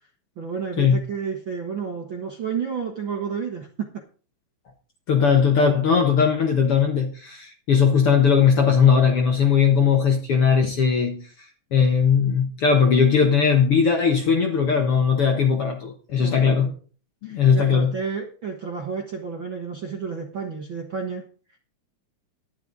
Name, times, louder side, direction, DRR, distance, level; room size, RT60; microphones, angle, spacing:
voice 1, 0.4-4.0 16.2-16.7 17.2-21.2, right 6 dB, 55° right, 1.3 m, -31 dB
voice 2, 5.1-11.3 11.7-16.7 17.2-17.9, left 6 dB, 60° left, 1.6 m, -19 dB
11.5 x 11.0 x 3.9 m
omnidirectional pair, 4.0 m